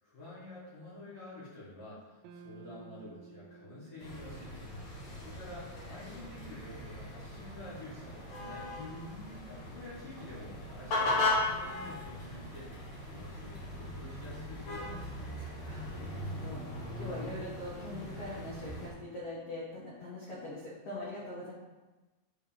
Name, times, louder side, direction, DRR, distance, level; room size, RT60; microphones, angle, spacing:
voice 1, 0.0-8.7 9.5-12.7 13.0-15.1, left 2 dB, 40° left, -9 dB, 2.3 m, -49 dB
sound 1, 2.2-6.6, right 4 dB, 85° right, 2.9 m, -56 dB
sound 2, 4.0-18.9, left 2 dB, 60° left, 2.0 m, -38 dB
voice 2, 8.8-9.4 15.4-21.5, left 2 dB, 80° left, -7 dB, 1.4 m, -43 dB
11.0 x 4.0 x 3.5 m, 1.2 s
omnidirectional pair, 5.2 m